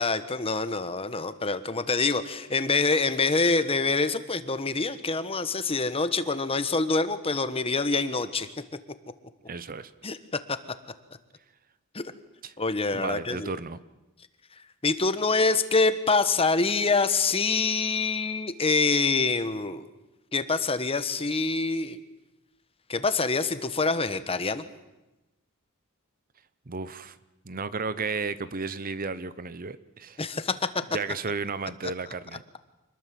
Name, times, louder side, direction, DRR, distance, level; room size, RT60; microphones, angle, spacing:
voice 1, 0.0-8.5 10.0-10.2 11.9-12.0 12.6-13.5 14.8-19.9 20.3-22.0 22.9-24.6 30.2-30.6, left 3 dB, 25° left, 12 dB, 1.2 m, -25 dB
voice 2, 9.5-9.9 12.4-12.5 12.9-13.8 26.7-27.2 27.4-30.2 30.9-32.6, right 4 dB, 40° right, 15 dB, 0.9 m, -33 dB
26.0 x 20.5 x 7.7 m, 1.0 s
head